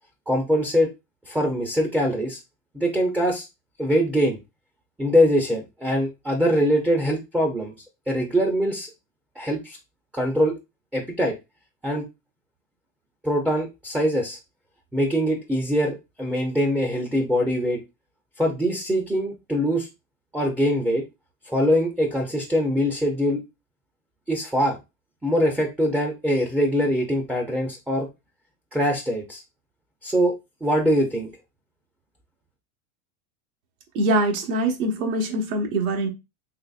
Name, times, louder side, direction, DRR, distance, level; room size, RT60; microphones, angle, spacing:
voice 1, 0.3-0.9 1.3-2.4 2.7-3.5 3.8-4.4 5.0-7.7 8.1-8.9 9.4-9.8 10.1-10.5 10.9-11.3 11.8-12.1 13.2-14.4 14.9-17.8 18.4-19.9 20.3-21.0 21.5-23.4 24.3-24.8 25.2-28.1 28.7-29.4 30.0-30.4 30.6-31.3, equal, 5° right, 0.3 m, -23 dB
voice 2, 33.9-36.1, right 1 dB, 85° right, 1.0 m, -23 dB
4.0 x 2.9 x 2.3 m
supercardioid pair, 125°, 42 cm